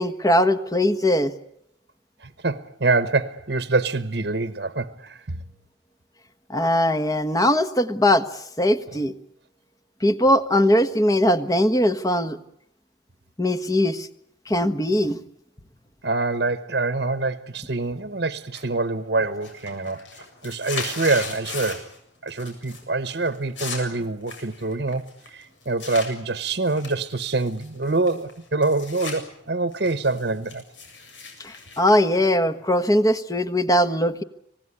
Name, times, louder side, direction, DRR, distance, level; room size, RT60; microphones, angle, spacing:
voice 1, 0.0-1.3 6.5-9.1 10.0-12.4 13.4-14.1 14.5-15.2 31.4-34.2, left 1 dB, 20° left, 1.3 m, -20 dB
voice 2, 2.2-5.4 16.0-21.9 22.2-30.6, right 3 dB, 60° right, 1.1 m, -25 dB
sound 1, 18.5-19.0 19.3-22.0 22.3-22.8 23.1-26.1 26.6-29.2 29.5-32.7, left 4 dB, 85° left, 7.5 m, -37 dB
25.5 x 18.5 x 9.9 m
head